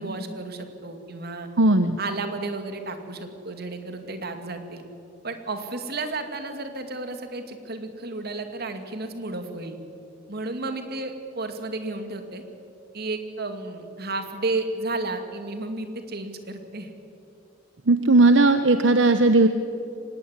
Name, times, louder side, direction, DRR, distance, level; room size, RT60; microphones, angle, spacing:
voice 1, 0.0-1.5 2.0-4.8 5.2-9.8 10.3-12.4 12.9-16.9, right 2 dB, 55° right, 7 dB, 2.5 m, -32 dB
voice 2, 1.6-2.0 17.9-19.5, right 2 dB, 80° right, 9 dB, 1.0 m, -17 dB
24.5 x 19.0 x 9.8 m, 2.7 s
head